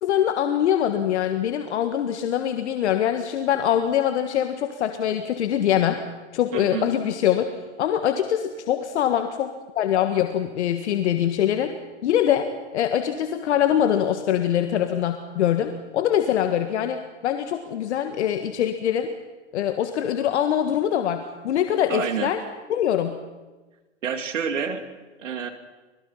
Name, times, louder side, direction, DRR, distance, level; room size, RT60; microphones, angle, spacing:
voice 1, 0.0-6.0 6.3-11.7 12.0-19.1 19.5-22.4 22.7-23.2, left 10 dB, 65° left, 7 dB, 1.7 m, -23 dB
voice 2, 6.5-6.9 21.9-22.3 24.0-24.9 25.2-25.5, right 7 dB, 85° right, 9 dB, 2.5 m, -28 dB
25.5 x 21.5 x 5.7 m, 1.2 s
hypercardioid pair, 130°, 37 cm